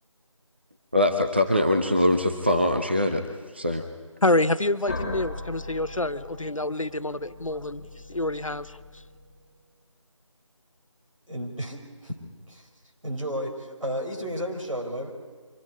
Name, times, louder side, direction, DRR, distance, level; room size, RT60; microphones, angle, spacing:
voice 1, 0.9-3.3 3.5-3.8, left 1 dB, 20° right, 5 dB, 0.6 m, -22 dB
voice 2, 4.2-7.8 8.1-8.7, left 2 dB, 85° left, 14 dB, 0.9 m, -26 dB
sound 1, 4.9-9.6, left 2 dB, 10° left, 2.7 m, -39 dB
voice 3, 11.3-12.1 12.5-12.7 13.0-15.1, equal, 80° right, 2 dB, 4.4 m, -32 dB
24.0 x 14.5 x 9.4 m, 1.5 s
figure-of-eight pair, 170°, 17 cm